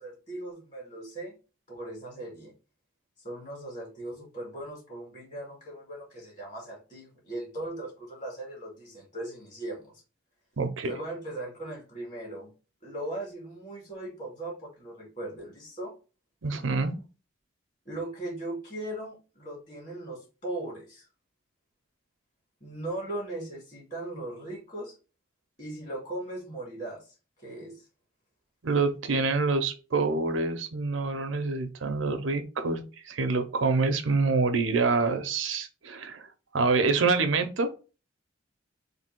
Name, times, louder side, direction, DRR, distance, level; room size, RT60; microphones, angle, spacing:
voice 1, 0.0-1.4 1.7-2.5 3.2-10.0 10.8-12.5 12.8-15.9 17.9-21.1 22.6-25.0 25.6-27.1 27.4-27.9, right 1 dB, 40° left, -3 dB, 1.9 m, -38 dB
voice 2, 10.6-10.9 16.4-17.0 28.6-36.3 36.5-37.7, right 3 dB, 85° right, 7 dB, 0.7 m, -26 dB
3.4 x 2.7 x 4.5 m, 0.34 s
head